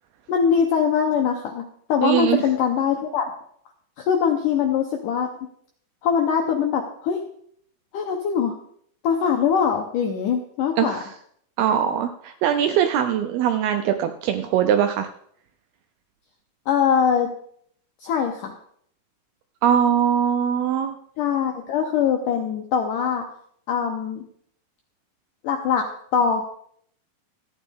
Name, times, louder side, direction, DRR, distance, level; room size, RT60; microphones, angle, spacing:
voice 1, 0.3-3.3 4.0-5.3 6.0-7.2 7.9-8.6 9.0-11.0 16.7-17.3 18.0-18.6 21.2-23.3 23.7-24.2 25.4-25.8 26.1-26.4, left 7 dB, 80° left, 2 dB, 1.9 m, -22 dB
voice 2, 2.0-2.4 10.8-11.0 11.6-15.1 19.6-21.0, right 9 dB, 80° right, 7 dB, 2.3 m, -21 dB
14.5 x 9.5 x 3.6 m, 0.65 s
omnidirectional pair, 5.1 m